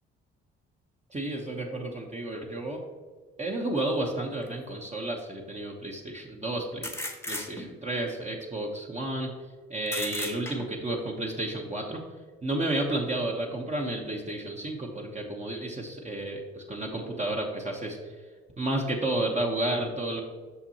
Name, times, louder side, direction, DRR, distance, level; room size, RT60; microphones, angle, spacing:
voice 1, 1.1-2.8 3.4-6.9 7.3-9.3 9.7-12.0 12.4-18.2 18.6-20.2, right 1 dB, 25° right, 0 dB, 0.9 m, -31 dB
sound 1, 4.4-4.5 6.8-7.9 9.9-10.9, left 1 dB, 10° left, 0.9 m, -36 dB
6.1 x 5.6 x 2.9 m, 1.5 s
hypercardioid pair, 55°, 30 cm